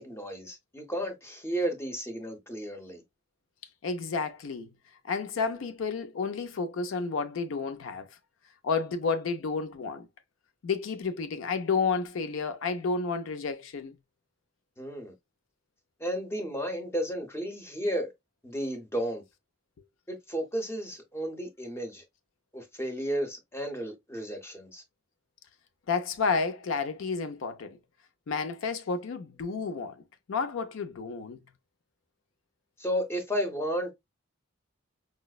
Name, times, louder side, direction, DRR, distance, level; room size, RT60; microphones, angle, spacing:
voice 1, 0.0-3.0 14.8-15.1 16.0-18.1 18.4-19.2 20.1-22.0 22.5-24.8 32.8-33.9, equal, 15° left, 0.7 m, -33 dB
voice 2, 3.8-4.7 5.0-8.1 8.6-10.1 10.6-13.9 25.9-27.8 28.3-30.0 30.3-31.4, left 4 dB, 80° left, 0.4 m, -31 dB
4.8 x 2.0 x 2.2 m
head